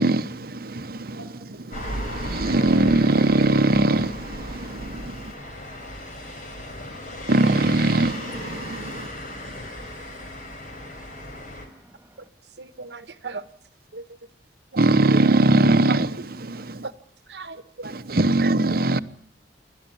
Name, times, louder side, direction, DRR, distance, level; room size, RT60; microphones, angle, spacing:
voice 1, 0.0-5.3 7.3-9.1 14.8-16.1 16.4-16.9 17.8-19.0, right 2 dB, 55° right, 1.0 m, -21 dB
sound 1, 1.7-11.7, left 1 dB, 50° left, 4.6 m, -36 dB
voice 2, 4.6-7.3 8.9-12.3, right 1 dB, 10° right, 2.5 m, -56 dB
voice 3, 12.6-13.4 13.9-14.0 15.9-16.0 16.8-16.9 17.3-18.0 18.9-19.0, right 4 dB, 75° right, 1.3 m, -36 dB
29.0 x 12.0 x 9.2 m
head